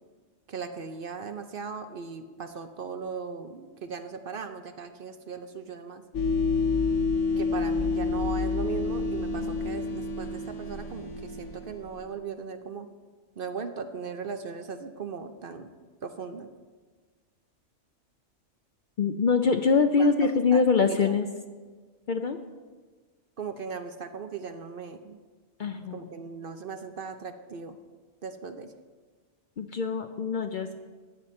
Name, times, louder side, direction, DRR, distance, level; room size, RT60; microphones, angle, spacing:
voice 1, 0.5-6.0 7.4-12.9 13.4-15.7 16.0-16.5 20.0-20.1 20.5-20.6 21.0-21.1 23.4-25.2 25.9-27.8 28.2-28.7, right 5 dB, 55° right, 8 dB, 0.8 m, -38 dB
sound 1, 6.1-12.0, left 4 dB, 80° left, 1.2 m, -28 dB
voice 2, 19.0-21.3 22.1-22.4 25.6-26.1 29.6-30.7, left 5 dB, 50° left, 7 dB, 0.6 m, -24 dB
15.0 x 9.3 x 4.3 m, 1.4 s
omnidirectional pair, 1.2 m